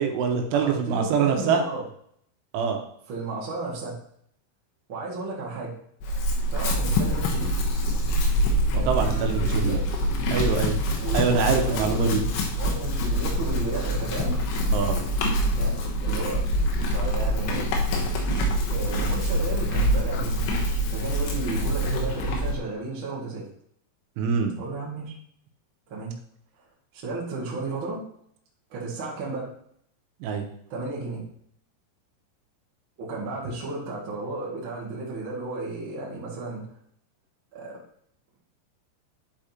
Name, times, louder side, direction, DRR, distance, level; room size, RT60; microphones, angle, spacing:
voice 1, 0.0-1.6 2.5-2.8 8.9-9.8 10.3-10.8 11.1-12.2 14.7-15.0 24.2-24.5 30.2-30.5, right 6 dB, 85° right, 4 dB, 3.3 m, -24 dB
voice 2, 0.5-1.8 3.1-4.0 4.9-5.8 6.5-7.6 8.7-9.8 11.0-11.4 11.7-14.4 15.5-16.4 16.8-17.7 18.7-23.5 24.6-25.1 25.9-26.1 26.9-28.0 28.7-29.5 30.7-31.2 33.0-36.7 37.5-37.8, right 3 dB, 45° right, -5 dB, 1.6 m, -33 dB
Chewing mastication / Livestock farm animals working animals, 6.0-22.6, equal, 80° left, 3.5 m, -25 dB
11.5 x 5.0 x 2.9 m, 0.68 s
omnidirectional pair, 5.6 m